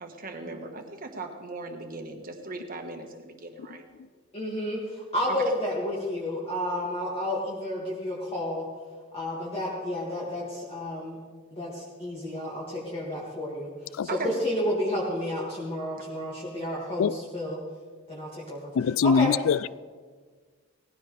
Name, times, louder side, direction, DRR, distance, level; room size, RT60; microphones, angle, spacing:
voice 1, 0.0-3.9 5.4-5.5 14.1-14.3, right 3 dB, 40° right, 1.5 m, -38 dB
voice 2, 4.3-8.6 9.1-11.2 11.5-13.7 14.2-17.6 18.1-18.7 19.0-19.3, left 1 dB, 25° left, 2.2 m, -31 dB
voice 3, 18.8-19.7, left 6 dB, 70° left, 0.3 m, -23 dB
18.5 x 15.5 x 3.4 m
head